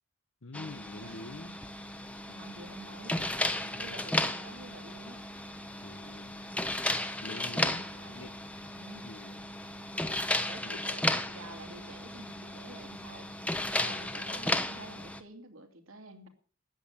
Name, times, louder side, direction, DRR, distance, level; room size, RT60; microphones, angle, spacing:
voice 1, 0.4-1.6 3.6-4.0 5.8-6.4 7.2-8.3 8.6-8.7 9.0-9.5 10.6-10.8 13.8-14.2, left 2 dB, 65° left, 0.9 m, -46 dB
sound 1, 0.5-15.2, left 1 dB, 5° left, 0.9 m, -34 dB
voice 2, 2.3-3.3 3.8-5.2 7.9-8.3 8.8-9.1 10.5-13.3 13.8-16.3, right 2 dB, 75° right, 2.8 m, -49 dB
14.0 x 9.7 x 7.2 m
head